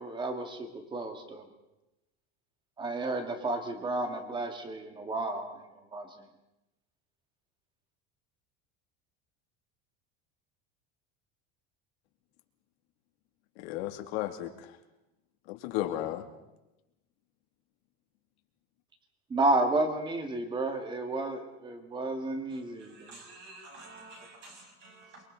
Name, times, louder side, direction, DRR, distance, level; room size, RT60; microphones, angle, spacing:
voice 1, 0.0-1.5 2.8-5.6 5.9-6.2 19.3-23.1, right 2 dB, 15° right, 6 dB, 2.0 m, -31 dB
voice 2, 13.6-14.8 15.5-16.3, left 13 dB, 80° left, 5 dB, 2.7 m, -34 dB
voice 3, 22.5-25.2, right 2 dB, 35° right, 0 dB, 6.4 m, -50 dB
28.0 x 23.5 x 4.0 m, 0.94 s
cardioid pair, 170°, 31 cm